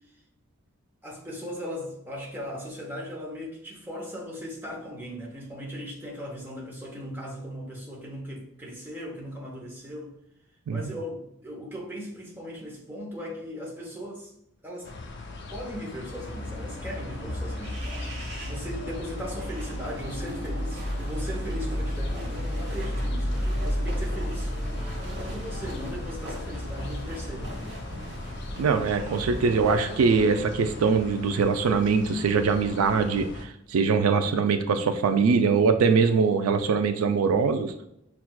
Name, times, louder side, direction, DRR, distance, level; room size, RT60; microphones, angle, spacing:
voice 1, 1.0-10.1 10.7-14.3 14.6-14.9 15.5-24.5 25.0-27.8 28.5-28.6, equal, 10° right, -3 dB, 0.8 m, -38 dB
sound 1, 14.8-33.4, left 2 dB, 50° left, 0.4 m, -41 dB
sound 2, 16.1-31.2, equal, 55° right, 1.1 m, -33 dB
voice 2, 28.6-37.7, right 5 dB, 85° right, 8 dB, 0.3 m, -22 dB
5.8 x 2.4 x 2.2 m, 0.78 s
head